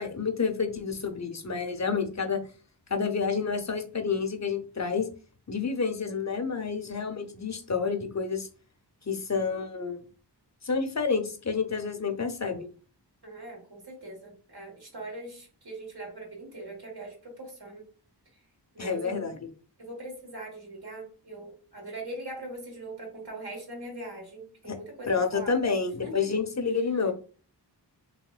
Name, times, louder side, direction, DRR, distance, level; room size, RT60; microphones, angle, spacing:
voice 1, 0.0-2.4 2.9-5.1 5.5-8.5 9.1-10.0 10.6-12.7 18.8-19.3 24.6-24.8 25.1-27.1, left 5 dB, 40° left, 6 dB, 0.6 m, -29 dB
voice 2, 13.2-17.8 18.3-18.4 18.7-19.3 19.8-25.6 26.0-26.4, right 1 dB, 60° right, -1 dB, 1.6 m, -41 dB
3.1 x 2.8 x 2.3 m, 0.39 s
wide cardioid pair, 40°, 43 cm